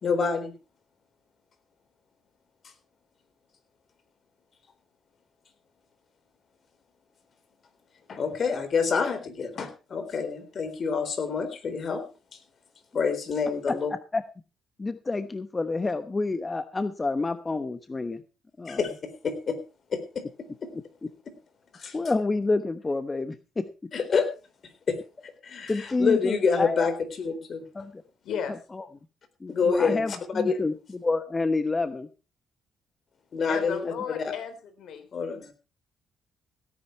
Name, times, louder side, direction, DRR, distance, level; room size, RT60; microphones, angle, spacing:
voice 1, 0.0-0.5 8.1-12.1 12.9-13.9 18.7-19.6 19.9-20.2 21.7-22.0 23.9-24.3 24.9-25.0 25.2-27.6 29.5-30.2 30.4-30.6 33.3-34.3 35.1-35.5, left 5 dB, 50° left, 9 dB, 3.9 m, -27 dB
voice 2, 14.8-18.2 18.6-18.8 20.7-21.1 21.9-23.7 25.7-26.9 27.7-28.0 28.7-28.8 29.4-32.1, left 3 dB, 25° left, 10 dB, 1.0 m, -28 dB
voice 3, 33.5-35.1, left 7 dB, 75° left, 10 dB, 3.7 m, -34 dB
17.0 x 10.0 x 4.5 m, 0.32 s
cardioid pair, 90°, 0 cm